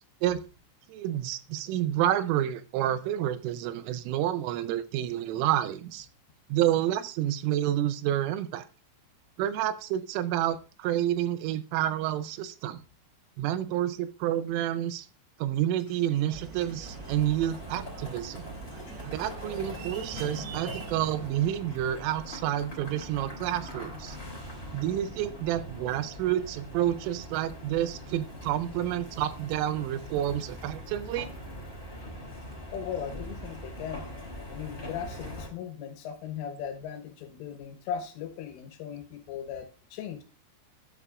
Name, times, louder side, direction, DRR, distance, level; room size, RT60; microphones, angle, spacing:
voice 1, 0.9-6.1 6.5-8.6 9.4-12.8 13.4-15.1 15.4-18.4 19.1-24.2 24.7-31.3, right 12 dB, 90° right, 12 dB, 3.3 m, -29 dB
sound 1, 15.8-20.8, left 3 dB, 65° left, 0.9 m, -54 dB
sound 2, 16.3-21.3, right 7 dB, 70° right, 2.4 m, -43 dB
sound 3, 16.8-35.5, equal, 15° left, 2.3 m, -42 dB
voice 2, 32.7-34.1 34.5-40.2, left 8 dB, 80° left, 6 dB, 3.8 m, -38 dB
12.0 x 9.8 x 2.5 m, 0.34 s
omnidirectional pair, 5.6 m